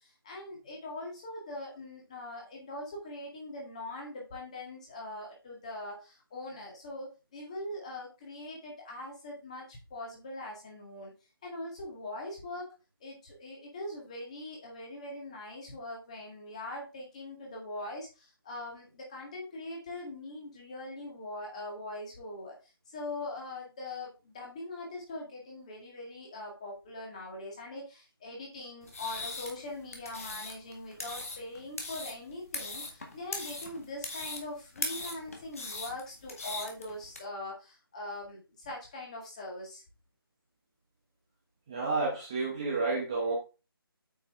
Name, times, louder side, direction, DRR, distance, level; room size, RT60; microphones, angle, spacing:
voice 1, 0.0-11.1 11.4-12.7 13.0-22.6 22.9-39.8, left 2 dB, 15° left, -1 dB, 1.9 m, -42 dB
sound 1, 28.8-37.2, left 3 dB, 35° left, 1.7 m, -40 dB
voice 2, 41.7-43.3, right 3 dB, 10° right, -3 dB, 0.8 m, -30 dB
8.4 x 5.4 x 3.6 m, 0.30 s
figure-of-eight pair, 175°, 13 cm